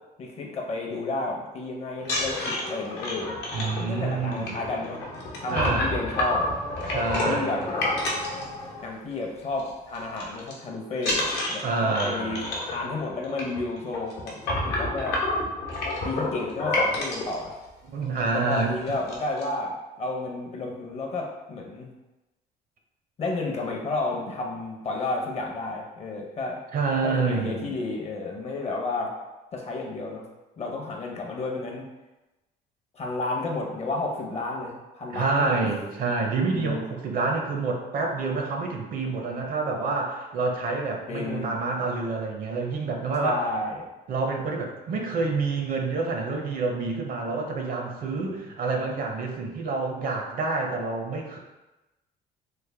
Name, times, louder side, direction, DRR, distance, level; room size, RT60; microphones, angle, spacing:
voice 1, 0.2-3.4 3.8-5.0 5.4-6.5 7.1-7.6 8.8-15.2 16.0-17.5 18.3-21.9 23.2-26.6 27.0-29.2 29.5-30.3 30.6-31.9 32.9-35.7 36.5-36.8 41.1-41.5 43.2-43.8 48.1-48.4, left 2 dB, 40° left, 0 dB, 0.6 m, -31 dB
sound 1, 2.0-9.1 9.4-9.7 9.9-10.5 11.0-17.3 18.0-18.1 18.4-18.6 18.9-19.4, left 2 dB, 75° left, 0.9 m, -29 dB
voice 2, 3.5-4.5 5.5-5.9 6.9-7.7 11.6-12.5 17.9-18.8 26.7-27.7 35.1-43.4 44.1-51.4, right 3 dB, 55° right, 2 dB, 0.6 m, -28 dB
3.2 x 2.1 x 3.3 m, 1.0 s
cardioid pair, 110°, 17 cm